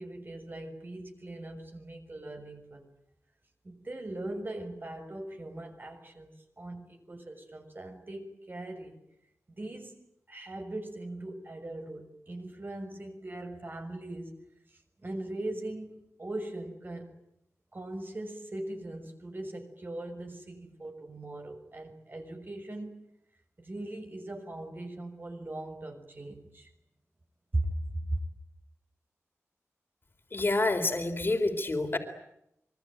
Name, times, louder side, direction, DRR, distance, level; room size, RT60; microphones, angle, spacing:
voice 1, 0.0-2.9 3.6-9.0 9.5-10.0 10.3-14.4 14.7-17.1 17.7-23.0 23.6-26.7 27.5-28.2, right 1 dB, 40° right, 6.2 m, -39 dB
voice 2, 30.3-32.0, left 2 dB, 45° left, 3.9 m, -28 dB
25.5 x 24.0 x 9.3 m
wide cardioid pair, 95°, 5 cm